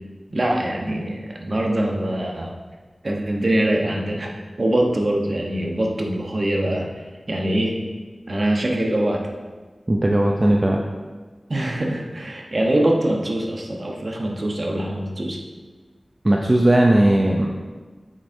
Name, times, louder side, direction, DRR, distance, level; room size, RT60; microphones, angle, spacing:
voice 1, 0.3-2.5 3.0-4.3 4.6-6.9 7.3-7.8 8.3-9.2 11.5-15.4, right 1 dB, 55° right, 0 dB, 1.0 m, -23 dB
voice 2, 9.9-10.8 16.2-17.5, right 1 dB, 35° right, 0 dB, 0.6 m, -17 dB
7.9 x 6.2 x 2.7 m, 1.3 s
wide cardioid pair, 55°, 0 cm